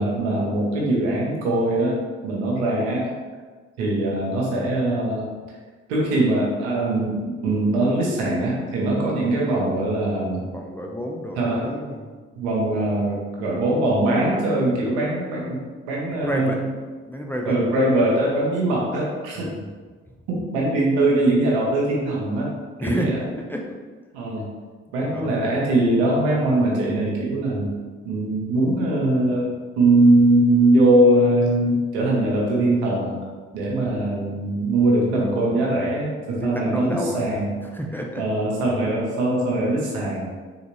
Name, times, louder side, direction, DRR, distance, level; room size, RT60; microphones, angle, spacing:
voice 1, 0.0-3.1 3.8-5.3 5.9-10.5 11.4-11.7 12.4-15.6 15.9-16.7 17.5-19.5 20.3-23.2 24.1-24.5 24.9-27.7 28.0-33.2 33.5-37.5 38.2-40.3, right 1 dB, 85° right, -3 dB, 0.8 m, -21 dB
voice 2, 10.5-12.1 16.2-16.6 17.1-17.6 19.4-19.7 22.8-23.8 24.3-24.4 25.0-25.4 36.4-38.3, equal, 5° left, 1 dB, 0.4 m, -30 dB
3.7 x 2.4 x 3.1 m, 1.4 s
hypercardioid pair, 45°, 32 cm